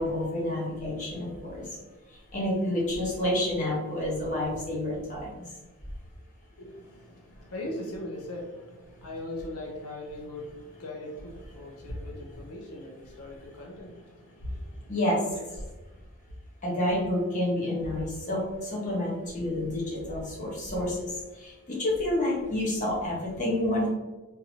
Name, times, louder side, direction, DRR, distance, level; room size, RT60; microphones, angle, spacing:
voice 1, 0.0-1.8 2.1-5.4 14.9-15.2 16.6-23.9, left 1 dB, 35° left, -5 dB, 1.1 m, -29 dB
voice 2, 6.5-15.3 15.6-15.7, left 1 dB, 80° left, -1 dB, 0.7 m, -40 dB
3.8 x 2.8 x 2.8 m, 1.2 s
head